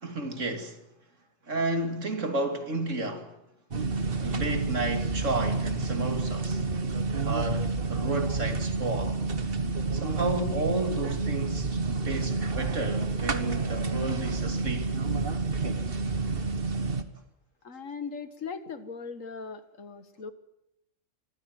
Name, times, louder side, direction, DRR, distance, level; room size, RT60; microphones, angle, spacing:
voice 1, 0.0-0.8 1.5-3.4 3.9-6.6 7.3-9.2 9.9-15.0, right 2 dB, 75° right, 3.0 m, -32 dB
sound 1, 3.7-17.0, right 3 dB, 50° right, 1.7 m, -29 dB
voice 2, 17.6-20.3, left 5 dB, 90° left, 2.0 m, -39 dB
26.0 x 15.0 x 9.4 m
omnidirectional pair, 1.3 m